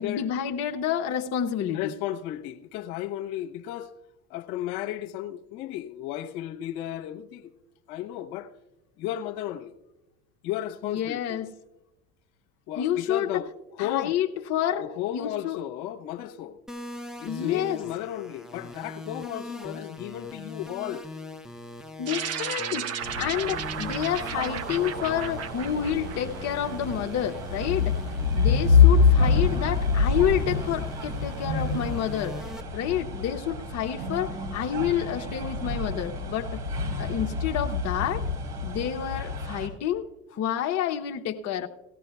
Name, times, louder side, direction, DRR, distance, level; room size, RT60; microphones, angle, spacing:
voice 1, 0.0-1.9 10.8-11.5 12.8-13.4 13.8-14.8 15.1-15.6 17.2-17.8 22.0-28.0 28.3-32.4 32.7-36.6 37.0-38.2 38.6-41.7, left 10 dB, 40° left, 0.8 m, -29 dB
voice 2, 1.7-3.9 4.3-7.5 7.9-8.5 9.0-9.7 10.4-11.5 12.7-13.5 13.7-14.2 14.8-16.6 17.2-21.1, left 12 dB, 60° left, 1.0 m, -34 dB
sound 1, 16.7-32.6, left 1 dB, ahead, 0.7 m, -42 dB
sound 2, 22.1-26.8, right 7 dB, 35° right, 0.9 m, -34 dB
sound 3, 23.0-39.7, left 5 dB, 65° right, 3.8 m, -26 dB
18.0 x 14.0 x 2.3 m
hypercardioid pair, 85°, 43 cm